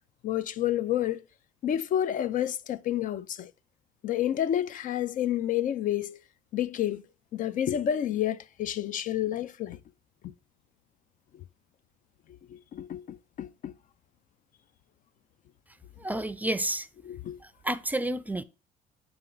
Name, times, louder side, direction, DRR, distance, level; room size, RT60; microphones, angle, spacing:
voice 1, 0.2-1.2 1.6-3.5 4.0-6.2 6.5-7.0 7.3-9.8 12.7-13.7 17.0-17.4, left 11 dB, 50° left, 0.4 m, -29 dB
voice 2, 16.0-16.9 17.6-18.4, right 1 dB, 10° right, 0.4 m, -30 dB
7.6 x 4.3 x 3.7 m
cardioid pair, 110°, 17 cm